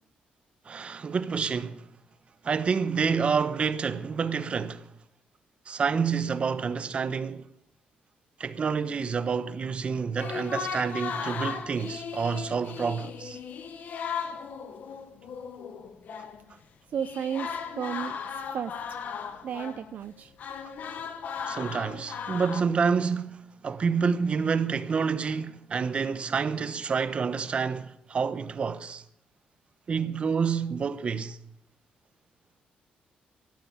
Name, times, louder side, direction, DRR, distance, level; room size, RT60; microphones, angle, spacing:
voice 1, 0.7-1.8 2.4-4.9 5.7-7.4 8.4-13.4 21.5-29.0 29.9-31.4, right 5 dB, 35° right, 1.0 m, -28 dB
sound 1, 10.2-16.5 16.9-22.6, left 6 dB, 60° left, 1.5 m, -37 dB
voice 2, 16.9-18.2 18.5-18.8 19.4-20.3, right 8 dB, 55° right, 0.5 m, -33 dB
13.0 x 12.0 x 8.6 m
cardioid pair, 135°, 3 cm